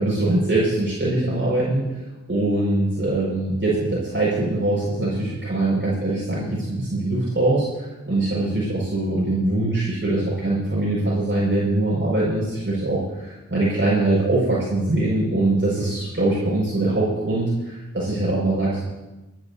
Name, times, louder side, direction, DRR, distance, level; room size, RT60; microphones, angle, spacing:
voice 1, 0.0-2.0 2.3-18.9, right 2 dB, 40° right, -8 dB, 5.7 m, -22 dB
28.0 x 11.0 x 2.8 m, 1.1 s
wide cardioid pair, 50°, 30 cm